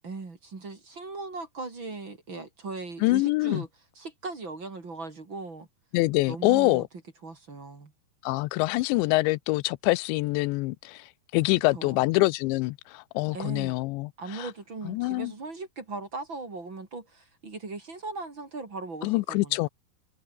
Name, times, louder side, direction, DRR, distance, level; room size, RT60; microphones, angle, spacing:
voice 1, 0.0-3.7 4.0-5.7 6.3-6.9 7.2-7.9 11.7-12.1 13.3-13.7 14.2-19.7, right 3 dB, 30° right, 3.4 m, -38 dB
voice 2, 3.0-3.6 5.9-6.9 8.2-11.1 11.3-14.5 14.9-15.3 19.0-19.7, left 21 dB, 90° left, 3.0 m, -25 dB
omnidirectional pair, 5.0 m